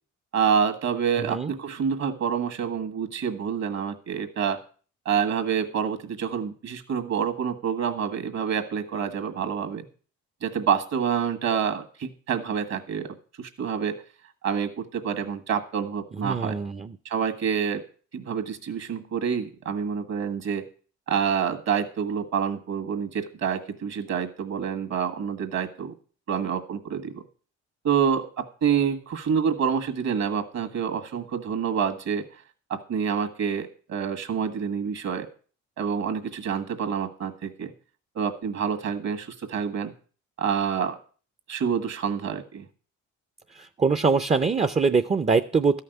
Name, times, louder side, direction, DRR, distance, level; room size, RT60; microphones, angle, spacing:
voice 1, 0.3-4.6 5.0-9.9 10.4-14.0 14.4-16.6 17.0-17.8 18.1-20.6 21.1-25.9 26.3-27.2 27.8-32.3 32.7-35.3 35.8-37.7 38.1-39.9 40.4-41.0 41.5-42.6, right 7 dB, 60° right, 6 dB, 1.7 m, -27 dB
voice 2, 16.2-17.0 43.5-45.8, right 4 dB, 20° right, 11 dB, 0.6 m, -23 dB
13.0 x 5.8 x 7.9 m, 0.41 s
cardioid pair, 90°, 30 cm